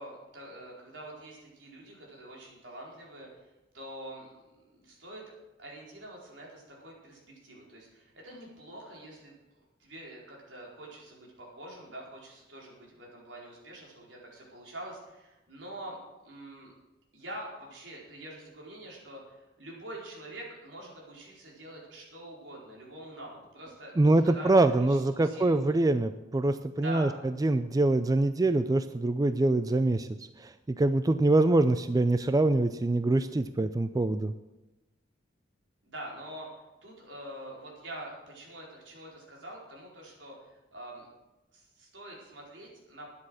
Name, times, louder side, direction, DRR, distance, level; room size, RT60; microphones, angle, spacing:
voice 1, 0.0-5.2 5.6-16.0 16.2-16.7 17.1-25.9 26.8-27.2 35.8-36.5 36.8-41.1 41.5-43.2, right 1 dB, 75° right, -3 dB, 4.6 m, -45 dB
voice 2, 24.0-27.1 27.4-30.1 30.4-34.3, right 2 dB, 20° right, 11 dB, 0.4 m, -24 dB
12.5 x 9.9 x 6.4 m, 1.0 s
head